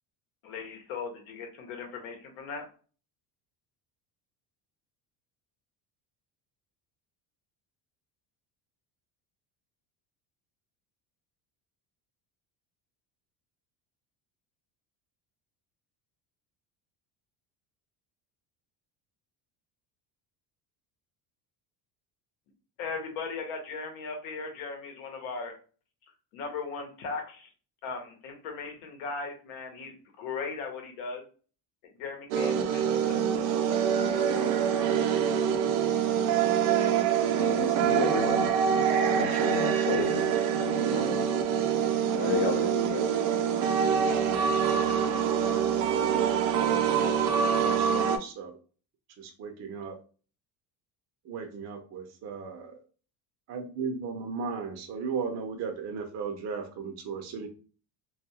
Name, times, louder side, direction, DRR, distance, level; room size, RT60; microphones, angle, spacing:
voice 1, 0.4-2.6 22.8-25.5 26.3-27.5 27.8-31.2 32.0-33.2, left 4 dB, 80° left, 4 dB, 0.9 m, -38 dB
sound 1, 32.3-48.2, right 8 dB, 80° right, 0.6 m, -25 dB
voice 2, 37.3-41.3 42.2-43.1, left 4 dB, 40° left, 1 dB, 0.5 m, -33 dB
voice 3, 47.7-48.6 49.2-50.0 51.2-52.8 53.5-57.5, right 5 dB, 35° right, 4 dB, 0.5 m, -36 dB
2.3 x 2.3 x 2.7 m, 0.38 s
cardioid pair, 120°, 47 cm